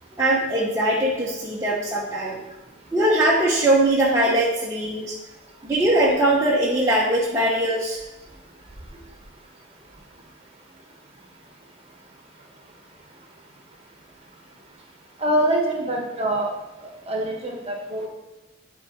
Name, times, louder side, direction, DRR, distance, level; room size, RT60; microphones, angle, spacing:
voice 1, 0.2-2.4 2.9-5.2 5.6-8.0, right 1 dB, 15° right, -6 dB, 0.9 m, -21 dB
voice 2, 15.2-16.5 17.1-18.1, right 1 dB, 30° right, 0 dB, 1.3 m, -24 dB
10.5 x 3.8 x 3.9 m, 1.0 s
head